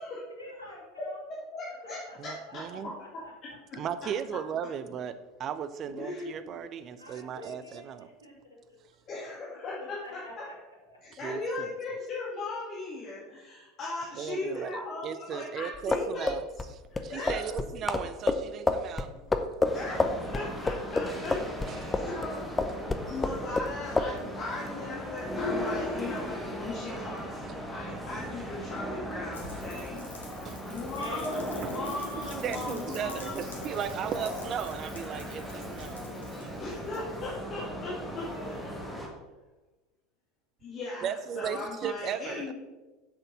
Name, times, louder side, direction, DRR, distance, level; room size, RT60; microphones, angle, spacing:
voice 1, 0.4-1.2 1.8-3.3 7.0-8.6 9.8-10.5 21.7-22.5 30.8-31.2 38.1-38.5, left 1 dB, 90° right, 2.5 m, -47 dB
voice 2, 1.0-3.2 5.9-6.6 9.1-10.4 11.0-16.3 16.9-17.6 19.1-19.2 19.7-22.4 23.0-27.4 27.7-30.1 30.7-33.3 36.6-38.2 40.6-42.5, left 2 dB, 35° left, 2.0 m, -38 dB
voice 3, 2.2-2.9 3.8-8.1 11.2-11.7 14.2-19.1 21.7-21.8 30.4-30.6 31.6-31.7 32.2-36.0 36.4-36.6 41.0-42.5, right 8 dB, 40° right, 0.6 m, -36 dB
sound 1, 15.7-22.3 22.6-23.7 24.0-24.1, left 3 dB, 15° left, 0.7 m, -28 dB
sound 2, 19.6-39.1, equal, ahead, 1.8 m, -37 dB
Rain, 29.3-37.4, left 3 dB, 75° left, 1.7 m, -48 dB
7.7 x 6.6 x 6.0 m
figure-of-eight pair, 75°, 0 cm